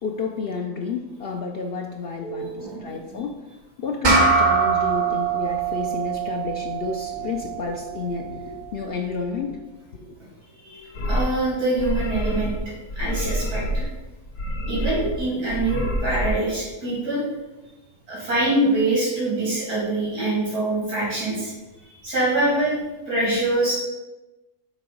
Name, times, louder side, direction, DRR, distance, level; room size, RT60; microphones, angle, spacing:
voice 1, 0.0-9.6 9.9-10.1, left 5 dB, 85° left, 2 dB, 0.5 m, -31 dB
voice 2, 2.2-3.2 10.6-13.8 14.7-17.3 18.1-21.5 21.8-23.7, right 2 dB, 80° right, -8 dB, 3.1 m, -25 dB
sound 1, 4.0-8.8, right 4 dB, 35° right, 0.9 m, -23 dB
sound 2, 10.9-11.3 11.8-12.6 12.9-13.9 14.2-15.2 15.5-16.3, equal, 70° left, 1.4 m, -27 dB
6.6 x 3.8 x 5.1 m, 1.1 s
omnidirectional pair, 1.6 m